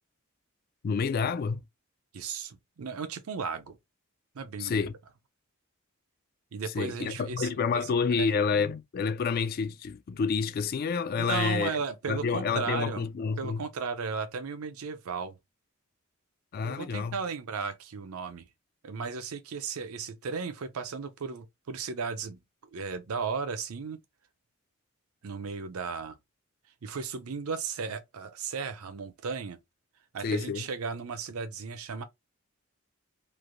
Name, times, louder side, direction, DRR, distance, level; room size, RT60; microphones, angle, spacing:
voice 1, 0.8-1.6 4.6-4.9 6.7-11.8 12.1-13.7 16.5-17.2 30.2-30.7, left 5 dB, 45° left, 0.3 m, -29 dB
voice 2, 2.1-3.8 4.3-4.9 6.5-8.3 11.2-13.0 13.4-15.4 16.6-18.5 18.8-22.4 22.7-24.0 25.2-26.2 26.8-29.6 30.1-32.0, right 5 dB, 80° right, 0.5 m, -35 dB
3.2 x 2.5 x 2.5 m
head